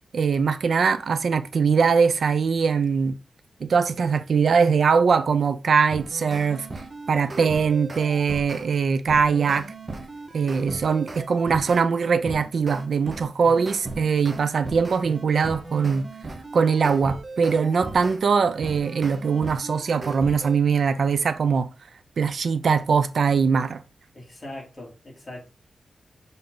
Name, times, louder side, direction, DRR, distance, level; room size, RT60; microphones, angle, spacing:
voice 1, 0.1-3.1 3.6-6.7 7.1-9.7 10.3-16.1 16.5-21.7 22.2-23.8, right 5 dB, 60° right, 0.6 m, -21 dB
sound 1, 5.9-8.7 9.1-11.8 12.3-18.2 18.6-20.6, right 2 dB, 30° right, 1.0 m, -37 dB
voice 2, 24.1-25.5, left 1 dB, 25° left, 2.8 m, -40 dB
6.9 x 3.6 x 3.9 m
wide cardioid pair, 160°, 0 cm